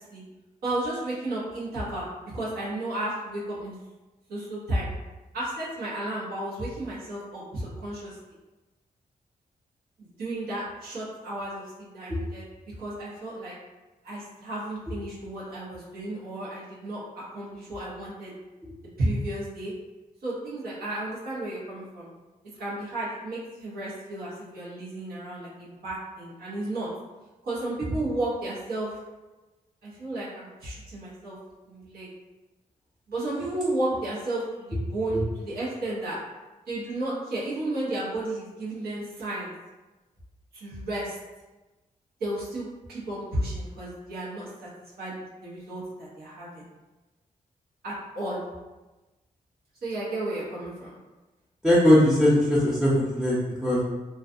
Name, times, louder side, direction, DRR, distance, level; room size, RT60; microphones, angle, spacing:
voice 1, 0.6-3.7 4.3-4.9 5.3-8.2 10.2-13.5 14.0-17.0 17.3-18.3 19.0-19.7 20.2-22.1 22.6-26.9 27.4-28.9 29.8-31.4 31.6-32.1 33.1-36.2 36.7-39.5 40.5-41.2 42.2-44.5 45.0-46.6 47.8-48.4 49.8-50.9, right 1 dB, 90° right, -8 dB, 0.8 m, -33 dB
voice 2, 51.6-53.8, left 1 dB, ahead, -9 dB, 0.6 m, -20 dB
2.5 x 2.3 x 2.5 m, 1.1 s
cardioid pair, 75°, 15 cm